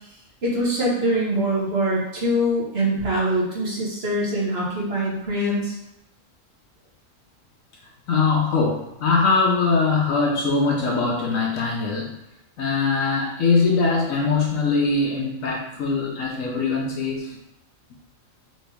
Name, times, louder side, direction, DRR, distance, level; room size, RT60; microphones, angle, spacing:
voice 1, 0.4-5.7, right 1 dB, 50° right, -5 dB, 1.5 m, -23 dB
voice 2, 8.1-12.2 12.6-17.4, left 4 dB, 80° left, -2 dB, 1.1 m, -22 dB
4.1 x 3.1 x 3.4 m, 0.88 s
omnidirectional pair, 1.4 m